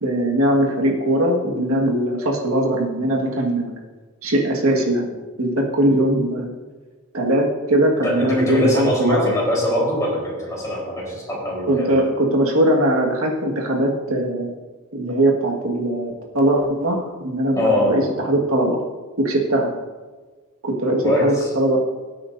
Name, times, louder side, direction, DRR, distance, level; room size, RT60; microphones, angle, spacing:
voice 1, 0.0-3.8 4.2-6.5 7.1-9.3 11.7-14.5 14.9-18.8 19.2-19.7 20.6-21.8, right 1 dB, 70° right, 0 dB, 1.7 m, -20 dB
voice 2, 8.0-11.9 17.6-18.0 21.0-21.5, left 1 dB, 15° left, -5 dB, 4.0 m, -22 dB
18.0 x 8.6 x 2.7 m, 1.3 s
head